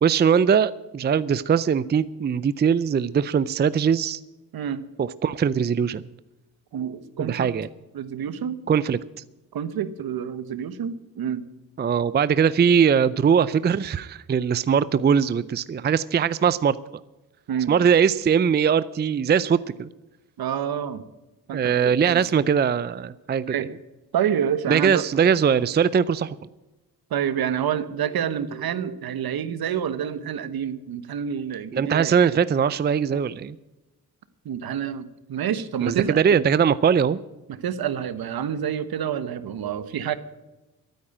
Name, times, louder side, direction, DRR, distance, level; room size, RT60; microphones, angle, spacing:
voice 1, 0.0-4.2 5.0-6.0 7.2-7.7 8.7-9.0 11.8-16.8 17.7-19.9 21.5-23.7 24.7-26.4 31.7-33.6 35.8-37.2, right 7 dB, 25° right, 17 dB, 0.5 m, -21 dB
voice 2, 4.5-4.9 6.7-7.5 7.9-8.6 9.5-11.4 17.5-17.7 20.4-21.0 21.5-22.2 23.5-23.7 24.1-25.0 27.1-32.1 33.1-33.2 34.4-36.2 37.5-40.2, right 8 dB, 65° right, 13 dB, 1.1 m, -28 dB
12.5 x 9.4 x 8.7 m, 1.0 s
cardioid pair, 80°, 38 cm